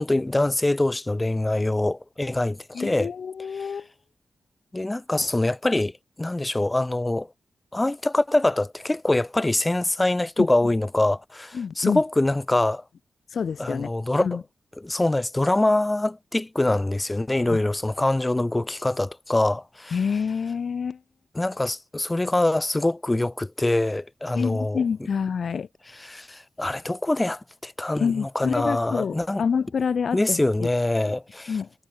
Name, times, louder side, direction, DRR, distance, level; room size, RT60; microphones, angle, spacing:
voice 1, 0.0-3.1 3.6-3.7 4.7-5.9 6.2-7.3 7.7-12.8 13.6-14.3 14.8-20.0 21.3-24.8 26.0-29.4 30.1-31.5, left 2 dB, 25° left, 0.7 m, -24 dB
voice 2, 2.7-3.9 10.4-10.5 11.5-12.0 13.3-13.9 14.2-14.4 17.5-17.6 19.9-21.0 24.3-25.7 28.0-30.7 31.5-31.7, left 6 dB, 70° left, 3.7 m, -27 dB
supercardioid pair, 40°, 0 cm